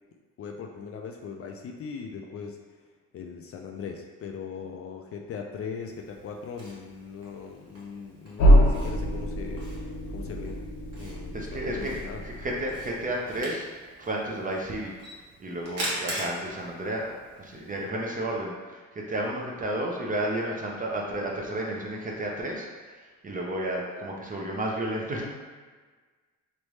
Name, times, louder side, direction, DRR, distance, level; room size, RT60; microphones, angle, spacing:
voice 1, 0.4-2.6 3.1-10.7 10.9-12.2, left 6 dB, 50° left, 3 dB, 0.4 m, -40 dB
Camera, 5.8-17.8, right 1 dB, 55° right, 1.2 m, -42 dB
sound 1, 8.4-13.1, equal, 85° left, 0.8 m, -24 dB
voice 2, 11.3-13.7 14.0-14.9 15.4-17.1 17.4-22.9 23.2-25.3, right 1 dB, 25° right, -1 dB, 0.7 m, -32 dB
3.2 x 2.6 x 3.1 m, 1.4 s
cardioid pair, 90°, 30 cm